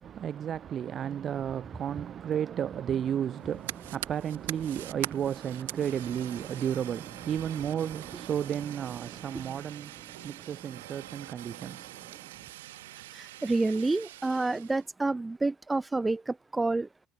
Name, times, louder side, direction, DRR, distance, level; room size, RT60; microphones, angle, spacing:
voice 1, 0.0-12.4, right 9 dB, 40° right, 1.8 m, -33 dB
Fire, 3.3-14.8, right 16 dB, 70° right, 2.0 m, -44 dB
voice 2, 13.1-16.9, right 3 dB, 15° right, 1.4 m, -29 dB
figure-of-eight pair, 60°, 0 cm